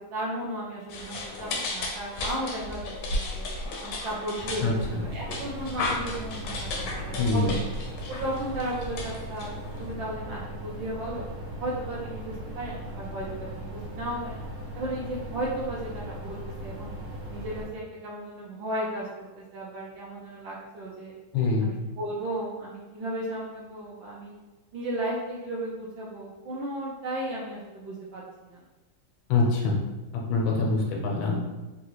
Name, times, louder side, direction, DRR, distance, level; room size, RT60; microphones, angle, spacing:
voice 1, 0.1-3.5 3.8-4.7 5.0-7.6 8.2-9.5 9.8-11.2 11.6-14.4 14.7-16.9 17.3-19.1 19.3-21.1 21.6-24.3 24.7-28.6, right 1 dB, 80° right, -6 dB, 1.4 m, -35 dB
sound 1, 0.9-9.9, left 2 dB, 70° left, 1.1 m, -34 dB
sound 2, 4.4-17.6, right 1 dB, 40° right, 1.1 m, -38 dB
voice 2, 7.2-7.5 21.3-21.7 29.3-29.7 30.3-31.4, left 3 dB, 90° left, -1 dB, 1.6 m, -24 dB
3.9 x 2.4 x 2.9 m, 1.2 s
omnidirectional pair, 2.2 m